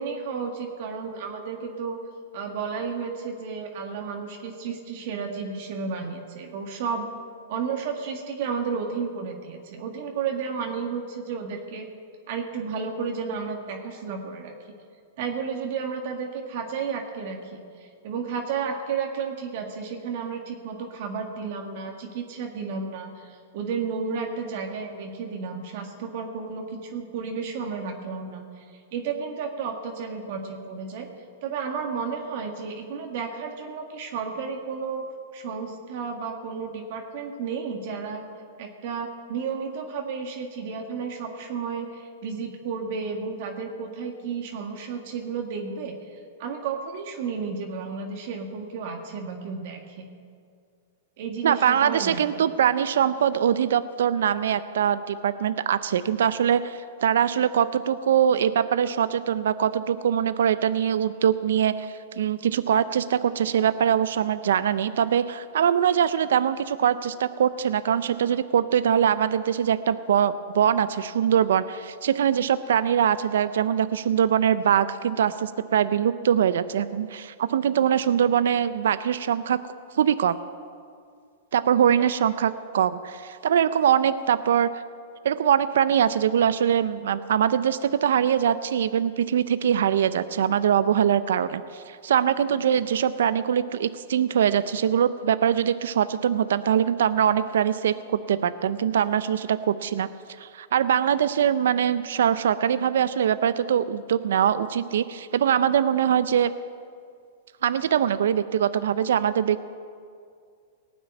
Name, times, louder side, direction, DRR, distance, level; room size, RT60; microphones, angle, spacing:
voice 1, 0.0-2.0 2.3-7.1 7.5-11.9 12.3-14.5 15.2-31.1 31.4-35.0 35.3-38.2 38.6-50.1 51.2-52.4 82.0-82.1, right 5 dB, 60° right, 2 dB, 1.7 m, -32 dB
voice 2, 51.4-79.6 80.0-80.3 81.5-84.7 85.2-100.1 100.4-106.5 107.6-109.6, right 9 dB, 75° right, 14 dB, 0.5 m, -23 dB
18.5 x 6.2 x 9.1 m, 2.2 s
hypercardioid pair, 120°, 0 cm